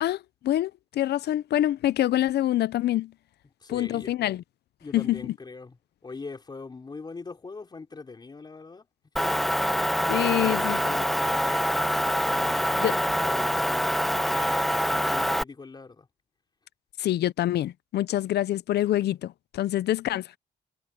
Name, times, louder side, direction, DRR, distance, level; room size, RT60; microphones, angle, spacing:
voice 1, 0.0-3.1 3.7-4.4 4.9-5.3 10.1-10.8 12.8-13.0 17.0-20.3, left 13 dB, 75° left, 0.5 m, -26 dB
voice 2, 3.6-4.1 4.8-5.8 6.0-8.8 9.2-9.4 10.3-11.7 12.3-16.1, left 4 dB, 25° left, 4.1 m, -42 dB
Motor vehicle (road) / Engine, 9.2-15.4, equal, ahead, 0.9 m, -25 dB
wide cardioid pair, 170°, 17 cm